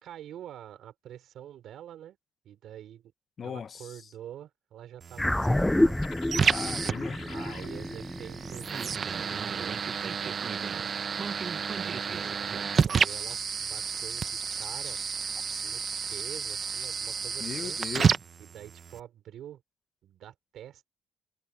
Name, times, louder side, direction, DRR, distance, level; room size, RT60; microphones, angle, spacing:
voice 1, 0.0-2.2 2.4-3.1 3.4-6.0 7.3-10.9 11.5-15.0 15.6-15.8 16.1-17.8 18.4-19.6 20.0-20.9, right 11 dB, 75° right, 4.2 m, -46 dB
voice 2, 3.4-4.0 6.4-7.2 15.5-15.7 17.4-18.1, left 7 dB, 50° left, 1.2 m, -38 dB
sound 1, 5.0-19.0, right 6 dB, 45° right, 0.9 m, -31 dB
sound 2, 5.2-9.8, left 1 dB, 10° left, 0.4 m, -29 dB
sound 3, 6.0-7.7, left 10 dB, 70° left, 5.7 m, -46 dB
cardioid pair, 90°, 0 cm